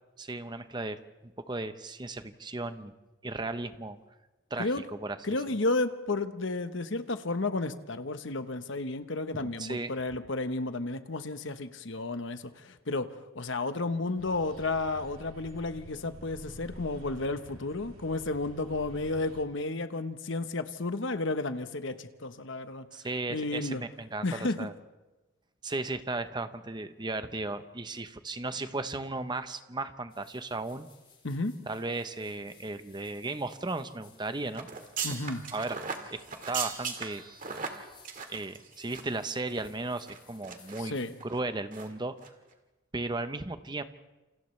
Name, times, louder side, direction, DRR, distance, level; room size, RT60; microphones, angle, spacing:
voice 1, 0.2-2.9 3.2-4.0 4.5-4.7 5.0-5.2 9.3-9.9 22.9-24.7 25.6-30.9 31.7-34.7 35.5-35.8 36.1-37.2 38.3-41.0 41.2-42.2 42.9-43.8, right 2 dB, 20° right, 10 dB, 0.9 m, -35 dB
voice 2, 5.2-22.9 23.3-23.8 24.2-24.7 31.2-31.6 35.0-35.4 40.8-41.1, left 2 dB, 60° left, 10 dB, 1.1 m, -32 dB
sound 1, 14.2-19.4, equal, 85° right, 3.6 m, -49 dB
sound 2, 30.1-41.2, left 6 dB, 25° left, 5.0 m, -61 dB
sound 3, 34.5-39.2 39.5-39.6 40.1-40.8 41.2-41.4 41.7-41.9 42.2-42.3, right 6 dB, 40° right, 1.9 m, -38 dB
28.5 x 28.0 x 3.3 m, 1.1 s
head